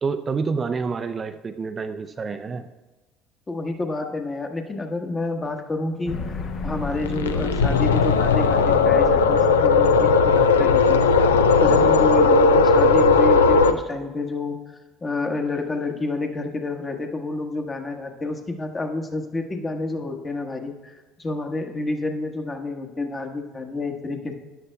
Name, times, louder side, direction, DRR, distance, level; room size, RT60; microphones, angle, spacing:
voice 1, 0.0-2.7, right 5 dB, 35° right, 9 dB, 0.4 m, -28 dB
voice 2, 3.5-11.0 11.6-14.6 15.0-24.3, left 2 dB, 25° left, 3 dB, 1.3 m, -29 dB
sound 1, 6.1-10.9, left 4 dB, 50° left, 1.0 m, -32 dB
sound 2, 7.0-13.7, left 4 dB, 85° left, 0.4 m, -17 dB
13.0 x 9.8 x 2.2 m, 1.2 s
hypercardioid pair, 65°, 0 cm